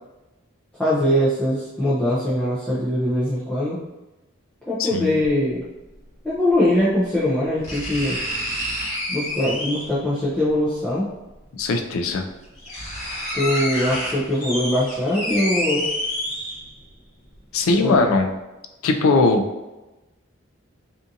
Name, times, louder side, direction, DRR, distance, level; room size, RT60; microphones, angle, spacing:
voice 1, 0.8-3.8 4.7-5.6 6.2-8.2 9.1-11.1 13.3-15.9 17.8-18.1, left 1 dB, 5° left, -11 dB, 0.4 m, -22 dB
voice 2, 4.8-5.1 11.6-12.2 17.5-18.3 18.8-19.4, left 3 dB, 75° left, 6 dB, 0.3 m, -19 dB
sound 1, 5.2-5.3 6.8-6.9 7.6-10.0 11.4-11.5 12.1-12.2 12.4-16.9 17.3-17.4, equal, 35° left, 0.9 m, -28 dB
2.6 x 2.4 x 2.5 m, 1.0 s
head